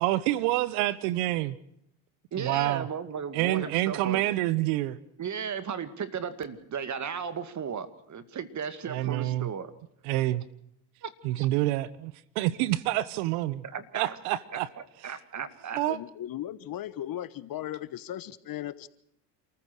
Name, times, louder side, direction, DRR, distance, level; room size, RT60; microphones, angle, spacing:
voice 1, 0.0-1.6 2.4-2.9 3.3-5.0 8.9-9.5 10.0-10.4 11.2-13.6 13.9-14.7 15.1-15.2 15.7-16.0, right 16 dB, 80° right, 1.1 m, -27 dB
voice 2, 2.3-4.2 5.2-9.7 11.0-11.5 13.7-14.2 15.0-15.8, right 7 dB, 40° right, 2.3 m, -35 dB
voice 3, 15.9-18.9, left 12 dB, 50° left, 1.3 m, -37 dB
28.0 x 15.0 x 6.3 m
supercardioid pair, 85°, 45 cm